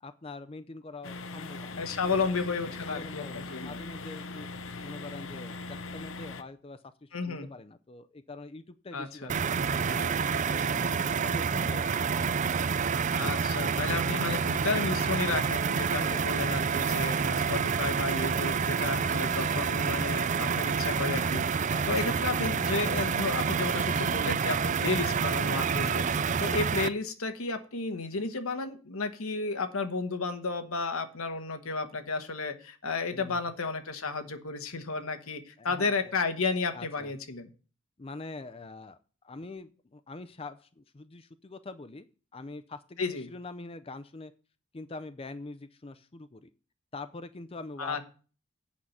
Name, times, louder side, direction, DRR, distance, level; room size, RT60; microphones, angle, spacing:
voice 1, 0.0-4.5 4.8-9.3 9.9-10.2 10.5-12.2 15.7-16.6 17.3-17.7 21.5-21.9 33.1-33.4 35.6-36.1 36.7-37.1 38.0-39.0 39.2-42.1 42.3-44.3 44.7-46.5 46.9-48.0, left 3 dB, 25° left, 11 dB, 0.5 m, -44 dB
sound 1, 1.0-6.4, left 3 dB, 65° left, 0.8 m, -40 dB
voice 2, 1.8-3.8 7.1-7.5 8.9-9.3 13.2-37.5 43.0-43.3 47.8-48.0, left 4 dB, 85° left, 7 dB, 1.2 m, -33 dB
sound 2, 9.3-26.9, right 6 dB, 35° right, 0.4 m, -28 dB
8.6 x 5.7 x 7.9 m, 0.38 s
head